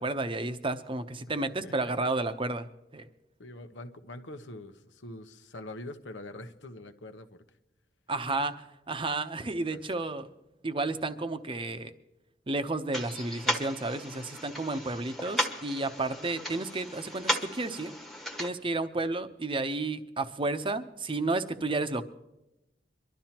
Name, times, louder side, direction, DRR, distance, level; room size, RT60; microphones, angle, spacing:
voice 1, 0.0-3.1 8.1-10.3 10.6-11.9 12.5-17.9 18.4-22.1, right 2 dB, 30° right, 0.8 m, -32 dB
voice 2, 3.4-7.4 9.7-9.8, left 1 dB, 90° left, 1.0 m, -44 dB
sound 1, 12.9-18.5, equal, ahead, 1.1 m, -35 dB
23.5 x 12.5 x 2.9 m
head